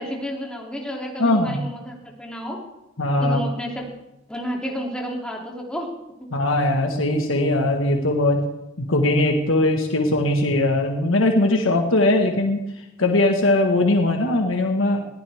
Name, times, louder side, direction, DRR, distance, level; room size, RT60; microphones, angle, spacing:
voice 1, 0.0-2.6 3.2-3.9 4.3-5.9 6.2-6.3, equal, 5° left, -1 dB, 2.9 m, -31 dB
voice 2, 1.2-1.6 3.0-3.4 6.3-8.4 8.8-12.6 13.0-15.0, left 2 dB, 85° left, 2 dB, 1.6 m, -20 dB
21.0 x 15.0 x 3.6 m, 0.92 s
head